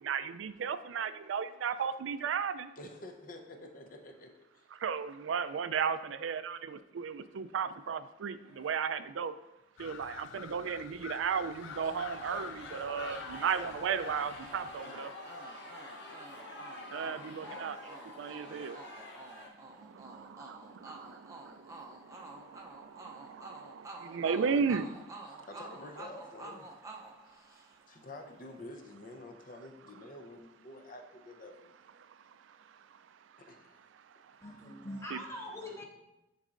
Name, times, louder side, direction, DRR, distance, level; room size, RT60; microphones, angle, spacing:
voice 1, 0.0-2.7 4.8-9.3 9.8-15.1 16.9-18.9 19.9-24.9 25.4-25.5 35.1-35.2, right 6 dB, 85° right, 13 dB, 0.4 m, -35 dB
voice 2, 2.8-4.7 25.3-26.7 27.3-31.8 33.4-33.8, left 2 dB, 45° left, 4 dB, 0.7 m, -49 dB
sound 1, 7.2-7.5 7.7-7.8 8.4-8.9 10.0-10.5 11.1-19.5, left 1 dB, 60° left, 1.3 m, -47 dB
sound 2, 9.8-14.8, left 8 dB, 90° left, 0.3 m, -48 dB
sound 3, 11.8-28.0, right 2 dB, 15° right, 0.5 m, -50 dB
voice 3, 34.4-35.9, left 1 dB, 15° left, -2 dB, 1.2 m, -42 dB
9.9 x 4.1 x 2.5 m, 0.95 s
head